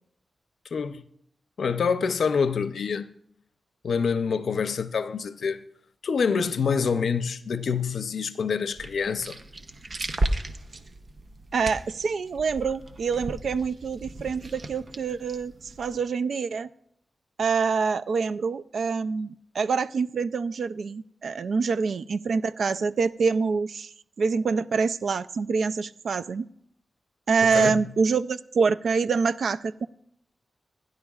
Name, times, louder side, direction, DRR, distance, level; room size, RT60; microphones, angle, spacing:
voice 1, 0.7-1.0 1.6-3.1 3.8-5.6 6.0-9.4 27.4-27.8, left 6 dB, 85° left, 0.6 m, -26 dB
sound 1, 8.7-16.0, right 1 dB, 45° right, 0.8 m, -35 dB
voice 2, 11.5-15.5 15.8-16.7 17.4-23.9 24.2-26.5 27.3-29.9, right 5 dB, 80° right, 0.4 m, -26 dB
28.5 x 10.5 x 2.4 m
wide cardioid pair, 140°, 0 cm